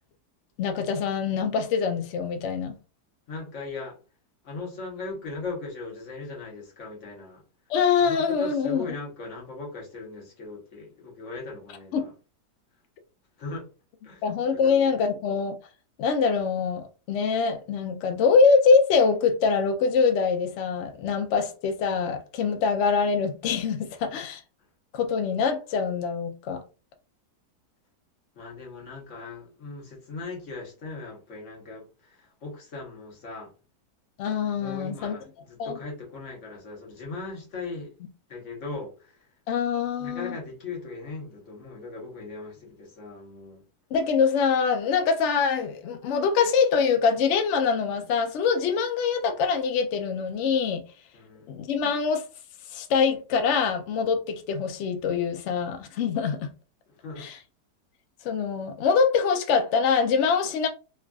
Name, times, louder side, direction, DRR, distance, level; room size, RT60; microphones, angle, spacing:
voice 1, 0.6-2.8 7.7-8.9 11.9-12.1 14.2-15.6 16.0-24.4 24.9-26.6 34.2-35.1 35.6-35.8 39.5-40.4 43.9-50.8 51.5-52.2 52.7-56.5 57.2-57.4 58.2-60.7, left 5 dB, 80° left, 0.6 m, -24 dB
voice 2, 3.3-4.0 4.4-7.4 8.0-12.1 13.4-13.7 14.0-14.2 14.5-14.9 28.4-33.5 34.6-37.9 38.3-39.2 40.0-43.6 51.1-51.5 56.9-57.3, left 3 dB, 50° left, 1.2 m, -39 dB
3.3 x 2.4 x 2.3 m
omnidirectional pair, 1.7 m